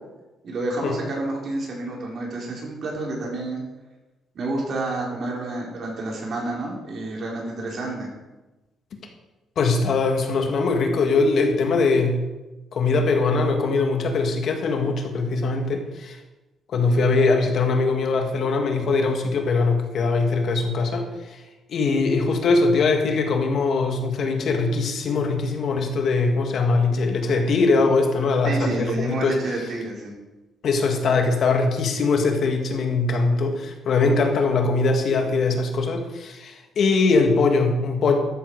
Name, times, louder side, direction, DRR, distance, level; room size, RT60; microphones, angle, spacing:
voice 1, 0.4-3.6 4.3-8.1 28.4-30.2, right 2 dB, 55° right, -2 dB, 3.9 m, -29 dB
voice 2, 9.6-12.2 12.7-16.2 16.7-21.1 21.7-29.4 30.6-38.2, left 3 dB, 60° left, 3 dB, 1.9 m, -21 dB
12.5 x 7.2 x 4.8 m, 1.1 s
cardioid pair, 90°, 0 cm